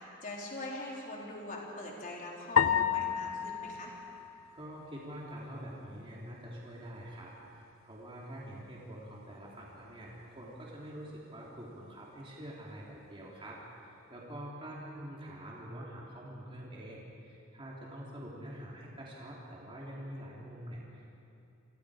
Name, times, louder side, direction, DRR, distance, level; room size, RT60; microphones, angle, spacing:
voice 1, 0.0-3.9, left 1 dB, 40° left, -3 dB, 4.2 m, -42 dB
sound 1, 2.6-5.0, left 7 dB, 80° left, 0.9 m, -31 dB
voice 2, 4.5-21.2, equal, 25° right, -5 dB, 3.3 m, -46 dB
29.5 x 23.5 x 5.1 m, 2.7 s
head